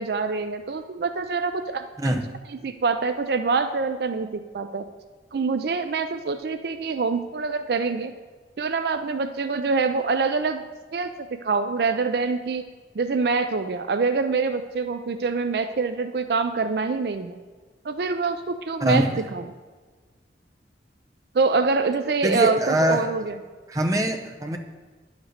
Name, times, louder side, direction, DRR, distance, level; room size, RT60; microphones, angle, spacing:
voice 1, 0.0-1.9 2.6-4.8 5.3-8.1 8.6-10.6 10.9-12.6 12.9-17.4 17.8-19.4 21.3-23.4, right 4 dB, 60° right, 9 dB, 0.4 m, -25 dB
voice 2, 22.2-23.1 23.7-24.6, right 1 dB, 20° right, 3 dB, 0.7 m, -23 dB
10.0 x 5.1 x 6.5 m, 1.4 s
head